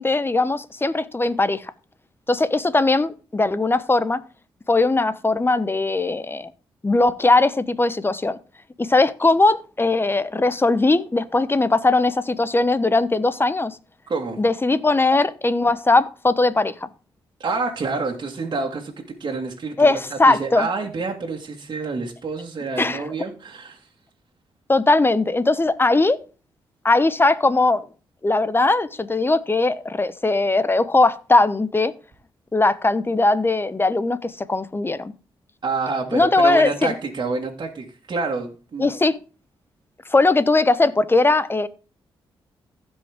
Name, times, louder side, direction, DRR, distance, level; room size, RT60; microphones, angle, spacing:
voice 1, 0.0-1.6 2.3-4.2 4.7-6.5 6.8-8.4 8.8-13.8 14.4-16.9 19.8-20.7 22.8-23.0 24.7-26.2 26.8-27.8 28.2-31.9 32.5-35.1 36.1-36.9 38.8-39.2 40.1-41.7, left 2 dB, 25° left, 0.9 m, -19 dB
voice 2, 14.1-14.4 17.4-23.9 35.6-38.9, right 4 dB, 50° right, 2.2 m, -28 dB
15.5 x 5.4 x 3.7 m
cardioid pair, 60°, 10 cm